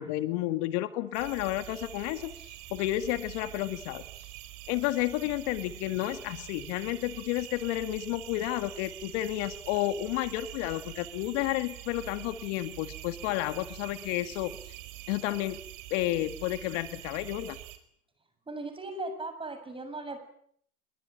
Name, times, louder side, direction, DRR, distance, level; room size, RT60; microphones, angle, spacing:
voice 1, 0.0-4.0 4.7-14.7 15.1-15.6 15.9-17.6, left 15 dB, 55° left, 10 dB, 2.0 m, -31 dB
sound 1, 1.1-17.8, right 15 dB, 50° right, 4.9 m, -45 dB
voice 2, 18.5-20.2, right 2 dB, 10° right, 8 dB, 7.2 m, -37 dB
26.5 x 23.5 x 8.9 m, 0.66 s
hypercardioid pair, 125°, 43 cm